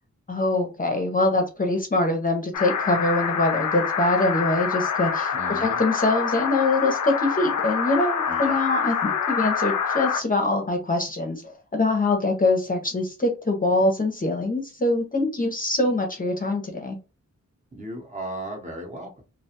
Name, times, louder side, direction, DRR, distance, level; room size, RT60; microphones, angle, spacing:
voice 1, 0.3-17.0, left 2 dB, 30° left, 3 dB, 0.6 m, -24 dB
sound 1, 2.5-10.2, left 6 dB, 75° left, 0.4 m, -26 dB
voice 2, 5.3-5.8 8.3-8.5 17.7-19.2, right 1 dB, 25° right, 1 dB, 0.8 m, -36 dB
2.4 x 2.2 x 2.8 m, 0.30 s
wide cardioid pair, 115°, 30 cm